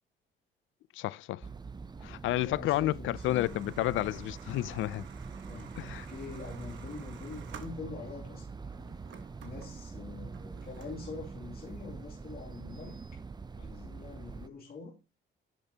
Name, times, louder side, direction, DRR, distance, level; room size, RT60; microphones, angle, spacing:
voice 1, 0.9-1.5 2.0-5.0 5.8-6.1, left 16 dB, 80° left, 0.4 m, -31 dB
sound 1, 1.4-14.5, right 4 dB, 20° right, 0.5 m, -44 dB
voice 2, 2.4-3.6 5.5-8.7 9.4-13.0 13.6-14.9, left 4 dB, 50° left, 2.5 m, -45 dB
sound 2, 3.1-8.2 8.7-11.2, right 7 dB, 70° right, 1.4 m, -53 dB
10.5 x 6.4 x 2.8 m
cardioid pair, 90°, 20 cm